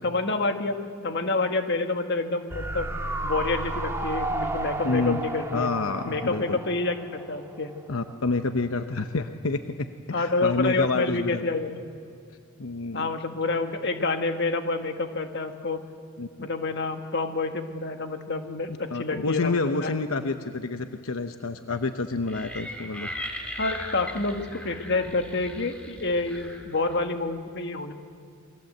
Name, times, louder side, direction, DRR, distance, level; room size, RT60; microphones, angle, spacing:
voice 1, 0.0-2.9 3.2-5.7 6.1-7.7 10.1-11.8 12.9-15.8 16.4-19.9 23.6-27.9, left 3 dB, 55° left, 6 dB, 1.8 m, -28 dB
sound 1, 2.5-7.8 8.0-8.1, right 2 dB, 10° right, 1.6 m, -32 dB
voice 2, 4.8-5.2 5.5-6.6 7.9-11.4 12.6-13.1 16.2-16.3 18.9-23.1, left 3 dB, 85° left, 8 dB, 0.9 m, -28 dB
sound 2, 22.3-27.1, left 1 dB, 5° left, 2.7 m, -38 dB
28.5 x 21.5 x 8.0 m, 2.3 s
head